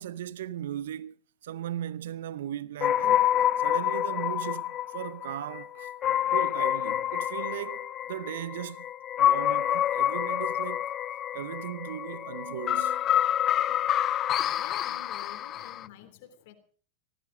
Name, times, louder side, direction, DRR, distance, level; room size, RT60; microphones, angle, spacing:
voice 1, 0.0-3.3 3.6-5.9 6.3-8.9 9.2-10.9 11.3-13.1 14.5-14.6, right 11 dB, 70° right, 0.7 m, -37 dB
sound 1, 2.8-15.9, left 11 dB, 35° left, 0.7 m, -28 dB
voice 2, 14.3-16.5, left 10 dB, 60° left, 3.3 m, -48 dB
18.5 x 15.0 x 5.1 m
figure-of-eight pair, 90°, 0 cm